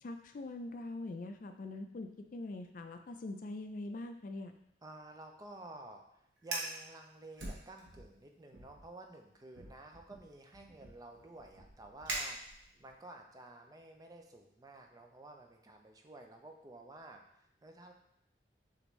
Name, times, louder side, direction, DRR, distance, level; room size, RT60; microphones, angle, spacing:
voice 1, 0.0-4.5, left 2 dB, 50° left, 6 dB, 0.4 m, -43 dB
voice 2, 4.8-17.9, right 2 dB, 20° right, 3 dB, 0.4 m, -52 dB
Fire, 6.4-6.8 7.4-8.2 8.5-8.9 9.5-12.9, right 2 dB, 85° right, 1.0 m, -43 dB
6.5 x 2.6 x 3.1 m, 0.75 s
head